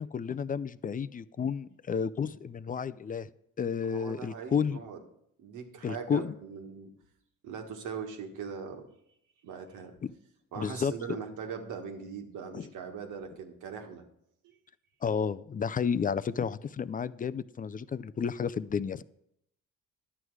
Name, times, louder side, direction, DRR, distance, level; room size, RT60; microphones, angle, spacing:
voice 1, 0.0-3.3 3.6-4.8 5.8-6.4 10.0-10.1 10.6-11.2 12.5-12.7 15.0-19.0, left 6 dB, 30° left, 15 dB, 0.4 m, -31 dB
voice 2, 3.8-5.0 5.4-6.9 7.4-8.9 9.4-10.0 10.5-14.0 14.4-14.6, right 6 dB, 80° right, 4 dB, 1.6 m, -40 dB
11.0 x 8.0 x 4.7 m, 0.75 s
cardioid pair, 90°, 30 cm